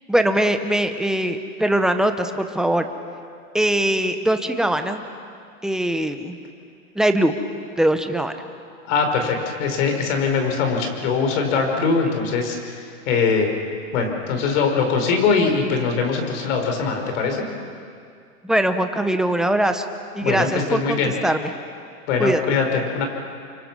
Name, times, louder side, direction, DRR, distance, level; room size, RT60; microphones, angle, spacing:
voice 1, 0.1-2.9 3.5-5.0 5.6-6.4 7.0-7.3 7.8-8.3 18.4-19.8 20.1-21.5 22.2-22.4, right 1 dB, ahead, 7 dB, 0.7 m, -21 dB
voice 2, 8.9-12.8 13.1-13.5 13.9-17.5 20.2-21.1 22.1-23.0, left 5 dB, 50° left, 4 dB, 5.1 m, -22 dB
30.0 x 25.0 x 6.2 m, 2.3 s
hypercardioid pair, 145°, 45 cm